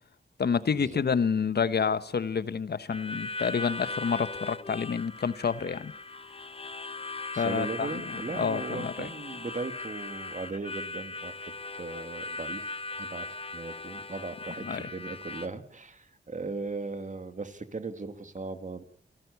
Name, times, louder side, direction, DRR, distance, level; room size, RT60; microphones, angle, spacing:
voice 1, 0.4-5.9 7.4-7.9 8.4-9.1 14.6-14.8, left 6 dB, 60° left, 1.2 m, -28 dB
Harmonica, 2.9-15.5, left 3 dB, 30° left, 1.2 m, -39 dB
voice 2, 7.3-18.8, right 3 dB, 40° right, 2.3 m, -38 dB
28.0 x 12.0 x 8.3 m
cardioid pair, 55°, 19 cm